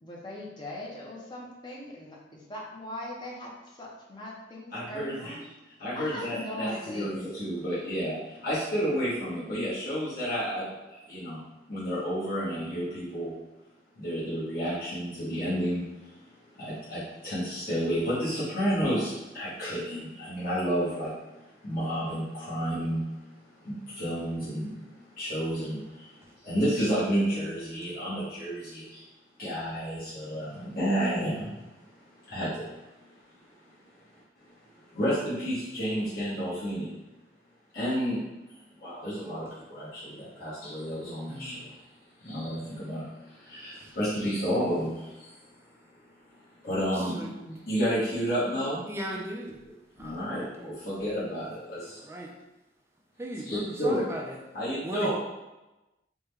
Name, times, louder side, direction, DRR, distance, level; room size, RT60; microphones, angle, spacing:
voice 1, 0.0-3.5 3.8-5.4 5.9-7.2, left 1 dB, 25° left, 0.6 m, -40 dB
voice 2, 4.7-5.4 5.8-11.4 11.7-13.3 14.0-23.0 23.4-29.1 29.4-31.7 32.1-32.8 33.3-34.2 34.5-34.6 34.9-36.9 37.7-38.2 38.8-41.8 42.2-45.3 46.6-48.8 49.1-49.2 50.0-52.0 53.4-54.1 54.5-55.1, equal, 55° left, 1.0 m, -31 dB
voice 3, 41.3-41.6 43.7-43.9 47.2-47.3 48.9-49.6 50.0-50.7 52.0-52.3 53.2-54.3 54.8-55.1, right 1 dB, 15° right, 0.4 m, -37 dB
3.5 x 2.1 x 3.2 m
head